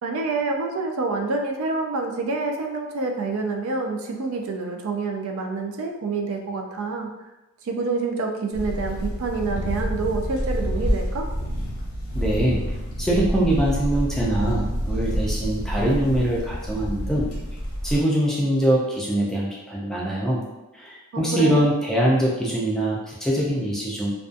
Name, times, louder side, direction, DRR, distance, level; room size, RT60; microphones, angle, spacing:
voice 1, 0.0-7.1 7.6-11.3 21.1-21.6, right 3 dB, 75° right, 3 dB, 0.4 m, -27 dB
sound 1, 8.5-18.0, equal, 85° left, 0.8 m, -28 dB
voice 2, 12.1-12.6 13.0-17.3 17.8-20.4 20.7-24.1, right 1 dB, ahead, -5 dB, 0.4 m, -23 dB
2.5 x 2.3 x 2.4 m, 1.0 s
head